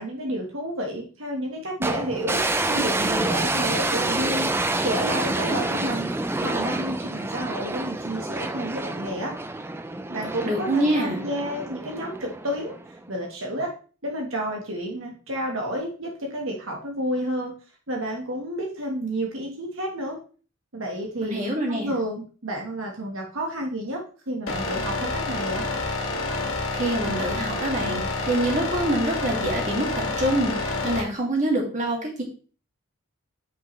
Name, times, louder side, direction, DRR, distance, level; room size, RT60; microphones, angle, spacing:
voice 1, 0.0-2.4 2.7-4.5 4.8-6.1 6.4-9.3 10.1-12.7 13.1-13.7 14.0-17.5 17.9-20.2 20.7-21.4 21.7-24.0 24.3-25.6, equal, 65° right, 0 dB, 1.4 m, -30 dB
sound 1, 1.8-13.0, right 2 dB, 10° right, 0.5 m, -28 dB
voice 2, 10.4-11.2 21.2-21.9 26.7-32.2, right 1 dB, 35° right, 0 dB, 2.3 m, -25 dB
sound 2, 24.5-31.0, left 2 dB, 70° left, 1.8 m, -28 dB
8.7 x 5.6 x 3.2 m, 0.38 s
head